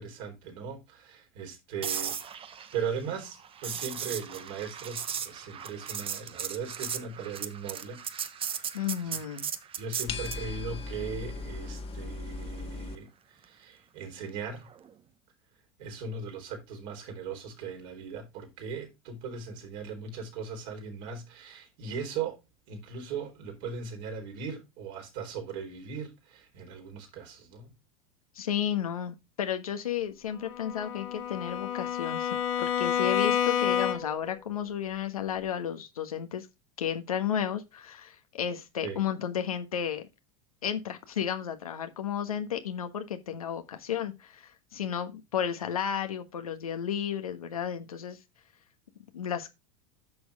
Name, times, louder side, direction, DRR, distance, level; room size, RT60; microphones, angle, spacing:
voice 1, 0.0-2.4 2.7-8.0 8.5-9.1 9.8-14.7 15.8-22.4 22.7-27.7 38.8-39.0, right 5 dB, 60° right, 4.0 m, -38 dB
sound 1, 1.8-10.5 14.7-14.9, right 8 dB, 30° right, 1.1 m, -37 dB
voice 2, 8.7-9.5 28.3-36.5 36.8-40.1 40.6-48.2 49.1-49.5, left 9 dB, 90° left, 1.3 m, -33 dB
sound 2, 10.1-13.0, left 3 dB, 35° left, 1.8 m, -38 dB
Bowed string instrument, 30.5-34.3, left 8 dB, 70° left, 2.0 m, -29 dB
10.5 x 6.4 x 3.5 m
hypercardioid pair, 95°, 18 cm